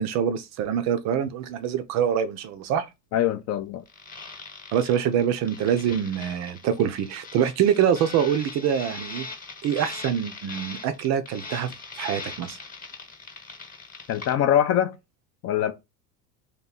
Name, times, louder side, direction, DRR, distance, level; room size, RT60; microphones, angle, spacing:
voice 1, 0.0-2.9 4.7-9.3 9.6-12.6, right 9 dB, 35° right, 0.5 m, -25 dB
voice 2, 3.1-3.8 14.1-14.9 15.4-15.7, left 10 dB, 35° left, 0.4 m, -23 dB
sound 1, 3.9-14.3, left 3 dB, 20° left, 1.1 m, -40 dB
2.9 x 2.7 x 3.8 m
figure-of-eight pair, 75°, 48 cm